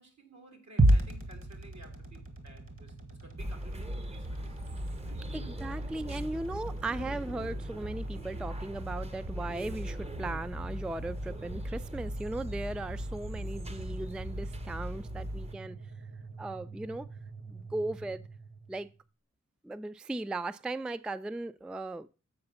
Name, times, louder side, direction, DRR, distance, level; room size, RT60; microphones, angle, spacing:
voice 1, 0.0-4.6 5.0-6.4, right 2 dB, 70° right, 2.2 m, -55 dB
sound 1, 0.8-19.0, right 1 dB, 50° right, 1.8 m, -36 dB
sound 2, 3.4-15.5, equal, 20° right, 0.7 m, -39 dB
voice 2, 5.3-15.8 16.4-17.1 17.5-18.2 18.7-18.9 19.6-22.1, right 2 dB, 5° right, 0.3 m, -37 dB
7.8 x 4.9 x 5.5 m
wide cardioid pair, 65°, 29 cm